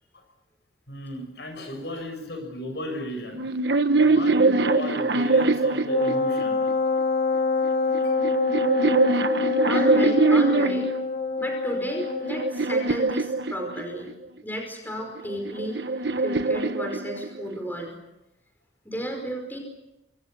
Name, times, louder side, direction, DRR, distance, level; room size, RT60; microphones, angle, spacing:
voice 1, 0.9-3.5 4.0-6.7 8.0-8.2, left 1 dB, 65° left, 5 dB, 7.1 m, -34 dB
sound 1, 3.3-6.7 7.6-11.0 11.7-14.1 15.2-17.6, right 3 dB, 65° right, 1.3 m, -23 dB
Wind instrument woodwind instrument, 5.9-12.5, left 4 dB, 40° left, 4.1 m, -26 dB
voice 2, 9.7-10.9 11.4-14.1 14.4-15.8 16.2-18.0 18.9-19.6, equal, 10° left, 2 dB, 5.2 m, -33 dB
28.5 x 25.0 x 6.9 m, 0.94 s
head